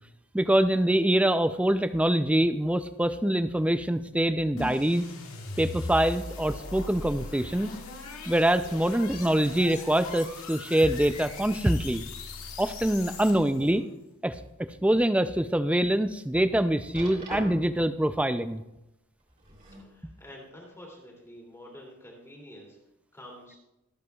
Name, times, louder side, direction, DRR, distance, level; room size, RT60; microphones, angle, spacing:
voice 1, 0.3-5.0 5.6-7.7 8.3-12.0 12.6-13.8 14.2-14.4 14.8-18.6, right 1 dB, 5° right, 10 dB, 0.4 m, -24 dB
sound 1, 4.6-13.7, left 2 dB, 80° left, 1.9 m, -39 dB
sound 2, 13.0-13.9 14.4-14.5 15.1-15.2 16.9-17.8 19.2-19.9 20.9-21.0, right 1 dB, 40° right, 3.3 m, -42 dB
voice 2, 19.8-22.8 23.1-23.6, equal, 15° left, -3 dB, 2.7 m, -48 dB
24.0 x 8.0 x 2.4 m, 0.92 s
head